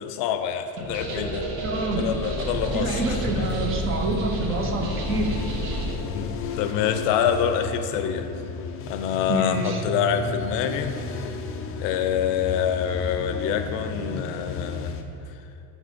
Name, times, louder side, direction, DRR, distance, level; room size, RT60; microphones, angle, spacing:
voice 1, 0.0-1.5 2.0-3.3 6.1-8.3 8.9-11.0 11.8-14.9, left 9 dB, 65° left, 8 dB, 0.7 m, -26 dB
sound 1, 0.8-6.0, right 1 dB, 70° right, 2.1 m, -30 dB
voice 2, 1.6-2.2 2.7-5.4 9.3-9.8, right 2 dB, 30° right, 3 dB, 0.7 m, -27 dB
sound 2, 2.5-15.0, left 3 dB, 30° left, 0.4 m, -33 dB
8.2 x 6.4 x 5.1 m, 2.7 s
cardioid pair, 175°, 45 cm